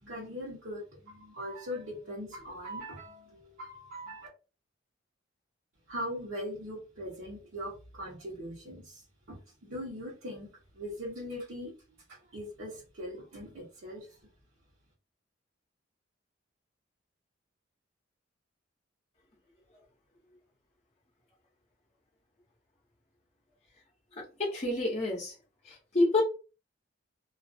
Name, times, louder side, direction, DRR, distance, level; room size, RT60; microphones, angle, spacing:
voice 1, 0.0-4.3 5.9-9.0 9.3-10.5 10.7-11.7 12.1-14.1, equal, 80° right, -6 dB, 0.9 m, -40 dB
voice 2, 24.4-25.3 25.9-26.2, left 2 dB, 35° left, -3 dB, 0.6 m, -27 dB
2.4 x 2.3 x 2.5 m, 0.33 s
head